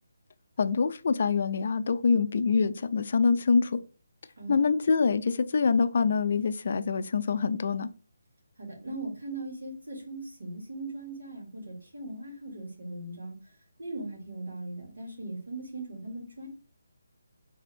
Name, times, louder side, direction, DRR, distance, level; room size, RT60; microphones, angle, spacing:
voice 1, 0.6-3.8 4.5-7.9, left 5 dB, 50° left, 0.4 m, -25 dB
voice 2, 4.4-4.7 8.6-13.3 13.8-16.5, right 2 dB, 85° right, 2.4 m, -39 dB
4.1 x 3.5 x 3.4 m
hypercardioid pair, 165°, 0 cm